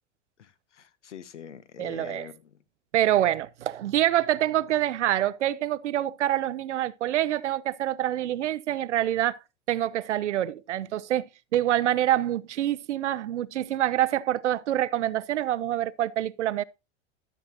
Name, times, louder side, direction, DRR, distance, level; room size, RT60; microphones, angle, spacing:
voice 1, 0.4-2.6, left 8 dB, 85° left, 0.8 m, -44 dB
voice 2, 1.8-2.3 2.9-9.4 9.7-11.3 11.5-16.6, right 12 dB, 85° right, 0.5 m, -26 dB
12.5 x 7.3 x 2.8 m
hypercardioid pair, 90°, 35 cm